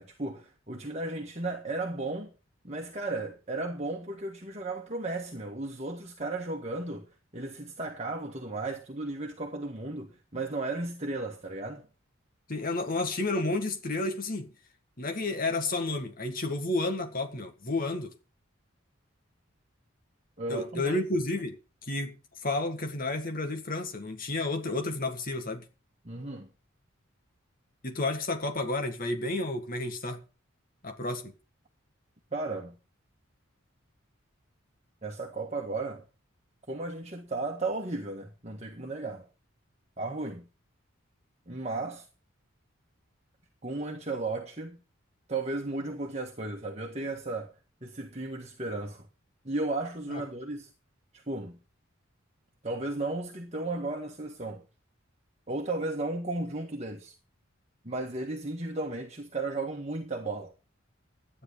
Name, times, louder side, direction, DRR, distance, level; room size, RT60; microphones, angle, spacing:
voice 1, 0.0-2.3 2.6-7.1 7.3-11.9 20.4-21.0 26.0-26.5 32.3-32.8 35.0-36.1 36.7-39.3 40.0-40.5 41.5-42.1 43.6-44.8 45.3-47.5 47.8-49.1 49.4-50.7 51.1-51.6 52.6-54.6 55.5-57.1 57.8-60.5, right 2 dB, 30° right, 1.6 m, -34 dB
voice 2, 12.5-14.5 15.0-18.1 20.5-21.6 21.8-22.2 22.4-25.6 27.8-30.2 30.8-31.3 50.1-50.2, left 2 dB, 45° left, 1.8 m, -31 dB
13.0 x 9.9 x 5.1 m
head